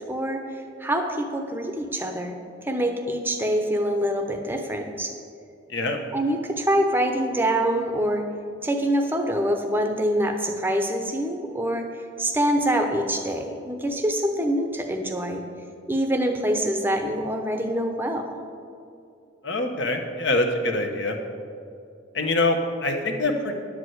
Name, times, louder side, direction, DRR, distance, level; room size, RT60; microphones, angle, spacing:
voice 1, 0.0-5.2 6.1-8.2 8.6-15.4 15.9-18.4, right 1 dB, 10° right, 4 dB, 0.8 m, -25 dB
voice 2, 19.4-21.1 22.1-23.5, left 2 dB, 60° left, 4 dB, 1.1 m, -24 dB
11.0 x 4.9 x 7.9 m, 2.5 s
head